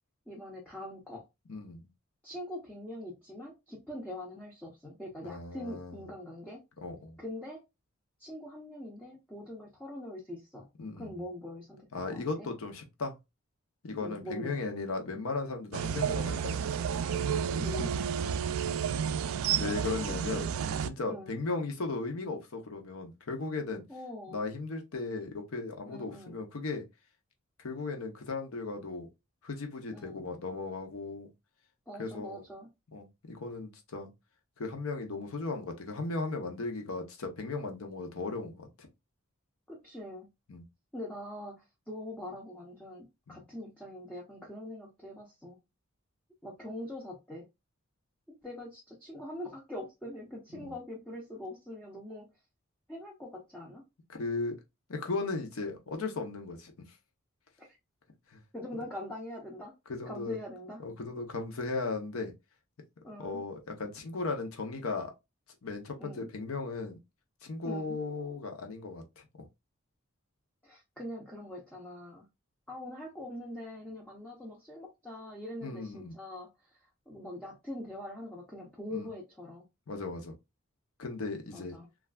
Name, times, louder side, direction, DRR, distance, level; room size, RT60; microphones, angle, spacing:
voice 1, 0.3-1.2 2.2-6.6 7.2-7.6 8.2-10.7 11.0-12.5 14.0-14.5 17.5-18.0 19.6-19.7 20.3-20.6 21.1-21.4 23.9-24.5 25.9-26.4 29.9-30.3 31.9-32.7 39.7-40.3 40.9-45.6 46.4-47.5 48.3-52.3 52.9-53.8 57.6-57.8 58.5-59.7 60.1-60.8 63.0-63.4 66.0-66.3 67.6-68.0 70.6-72.3 72.7-79.6 81.5-81.9, left 1 dB, 5° left, 0.5 m, -43 dB
voice 2, 1.5-1.9 5.2-6.1 6.8-7.2 10.8-11.2 11.9-13.1 13.8-16.6 19.6-20.5 20.9-23.8 24.3-26.8 27.6-29.1 29.4-31.3 32.0-32.4 32.9-34.1 34.6-38.9 40.5-40.6 43.3-43.4 50.5-50.7 54.1-54.5 54.9-56.7 58.3-58.4 59.9-60.4 60.8-62.3 63.2-65.1 65.6-67.0 67.4-69.2 75.6-76.1 78.9-79.1 79.9-80.3 81.0-81.8, left 3 dB, 80° left, 0.7 m, -36 dB
sound 1, 15.7-20.9, right 7 dB, 75° right, 0.3 m, -31 dB
3.2 x 2.3 x 2.2 m
head